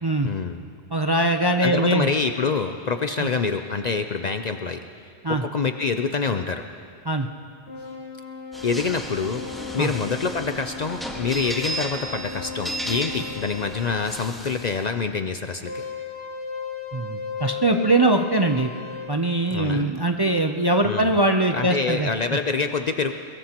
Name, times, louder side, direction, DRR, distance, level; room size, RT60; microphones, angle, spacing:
voice 1, 0.2-0.6 1.6-4.8 5.3-6.6 8.6-9.4 9.7-15.8 19.5-19.9 20.8-21.1 21.5-23.1, left 5 dB, 50° left, 7 dB, 0.6 m, -26 dB
voice 2, 0.9-2.1 5.2-5.4 7.0-7.3 9.8-9.9 16.9-18.7 19.1-22.1, right 2 dB, 30° right, 4 dB, 0.5 m, -21 dB
sound 1, 7.7-13.8 15.7-19.1, left 6 dB, 25° left, 4.3 m, -36 dB
sound 2, 8.5-14.8, right 1 dB, ahead, 1.4 m, -35 dB
22.5 x 22.0 x 2.9 m, 2.2 s
omnidirectional pair, 1.1 m